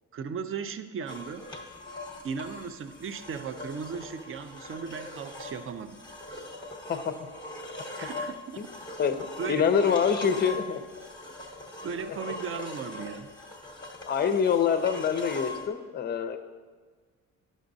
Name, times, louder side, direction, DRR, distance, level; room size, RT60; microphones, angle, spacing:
voice 1, 0.1-1.4 2.2-6.0 8.0-8.6 9.4-10.5 11.8-13.3, right 6 dB, 40° right, 10 dB, 0.4 m, -36 dB
sound 1, 1.1-15.7, left 2 dB, 15° left, 0.9 m, -41 dB
voice 2, 9.0-10.8 14.1-16.4, left 7 dB, 30° left, 9 dB, 0.5 m, -26 dB
11.5 x 6.2 x 2.6 m, 1.5 s
cardioid pair, 135°, 33 cm